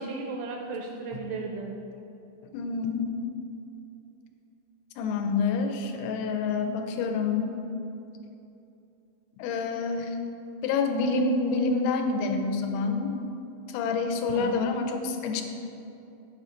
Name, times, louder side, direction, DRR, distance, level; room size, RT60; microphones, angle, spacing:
voice 1, 0.0-1.8 14.3-14.7, right 4 dB, 85° right, 1 dB, 2.1 m, -35 dB
voice 2, 2.5-3.2 5.0-7.6 9.4-10.1 10.6-13.1 13.7-15.4, left 4 dB, 90° left, 4 dB, 2.6 m, -27 dB
6.3 x 4.9 x 4.4 m, 2.8 s
omnidirectional pair, 4.4 m